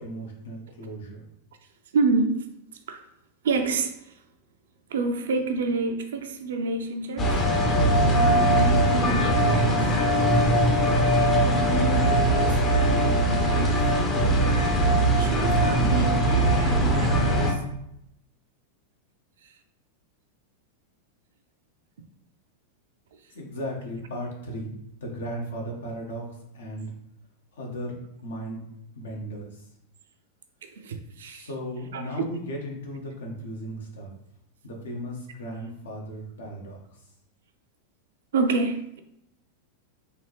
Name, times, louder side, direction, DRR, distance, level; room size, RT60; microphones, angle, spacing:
voice 1, 0.0-1.3 23.3-24.7 25.0-26.9 27.6-28.7 28.9-29.6 31.3-34.1 34.6-36.8, equal, 65° left, 0.9 m, -36 dB
voice 2, 1.9-2.5 2.9-3.0 3.4-4.1 4.9-7.5 8.7-9.8 11.4-13.9 15.0-17.6 30.8-31.5 31.9-32.2 38.3-39.0, right 3 dB, 60° right, 0.4 m, -29 dB
sound 1, 7.2-17.5, right 1 dB, 25° left, 0.7 m, -21 dB
3.4 x 2.7 x 3.0 m
figure-of-eight pair, 90°, 0 cm